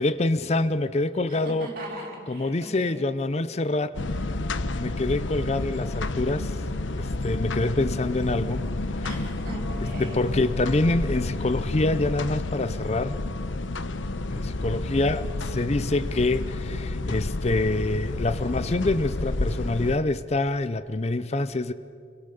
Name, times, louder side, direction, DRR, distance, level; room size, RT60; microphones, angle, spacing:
voice 1, 0.0-1.7 2.3-4.0 4.7-6.6 6.9-8.6 8.9-9.0 9.8-13.2 14.3-21.7, left 2 dB, 35° left, 0.6 m, -26 dB
voice 2, 1.3-3.0 9.0-10.2, right 1 dB, 50° right, 7.2 m, -39 dB
sound 1, 3.9-20.0, left 2 dB, 80° left, 0.9 m, -30 dB
29.5 x 23.0 x 6.8 m
head